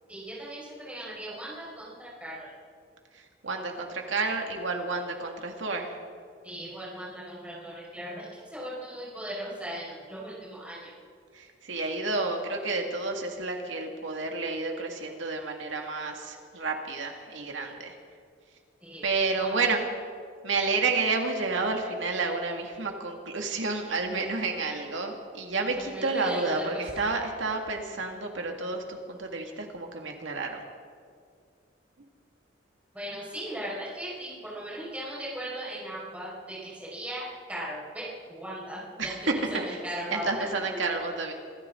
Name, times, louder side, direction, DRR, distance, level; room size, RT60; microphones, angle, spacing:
voice 1, 0.1-2.5 6.4-10.9 18.8-19.0 19.4-19.6 25.8-27.1 32.9-40.4, right 1 dB, 5° right, -7 dB, 5.2 m, -38 dB
voice 2, 3.1-6.0 11.3-18.0 19.0-19.8 20.4-30.6 39.0-39.2 39.7-39.8 40.1-41.3, right 3 dB, 80° right, 3 dB, 2.1 m, -30 dB
26.5 x 14.0 x 3.8 m, 2.1 s
head